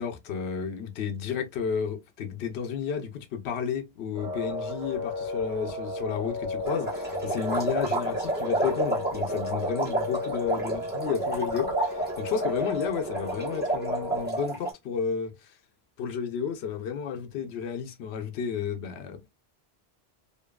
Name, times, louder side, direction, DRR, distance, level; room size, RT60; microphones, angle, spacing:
voice 1, 0.0-15.5 16.0-19.3, left 7 dB, 85° left, 0.8 m, -32 dB
sound 1, 4.1-14.3, left 1 dB, 85° right, 1.2 m, -34 dB
sound 2, 6.7-14.7, right 2 dB, 10° right, 0.9 m, -31 dB
2.7 x 2.2 x 2.2 m
omnidirectional pair, 1.1 m